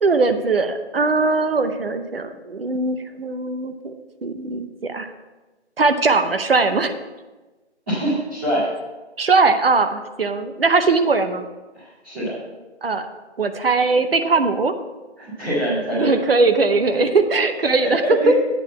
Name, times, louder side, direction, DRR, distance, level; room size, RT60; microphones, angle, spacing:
voice 1, 0.0-3.9 4.2-5.1 5.8-7.0 9.2-11.5 12.8-13.1 13.4-14.7 16.0-18.3, right 3 dB, 55° right, 9 dB, 0.8 m, -20 dB
voice 2, 7.9-8.7 11.8-12.4 15.2-16.2 16.9-17.1 17.8-18.3, right 1 dB, 10° right, -13 dB, 1.7 m, -24 dB
8.6 x 4.7 x 6.9 m, 1.2 s
hypercardioid pair, 175°, 34 cm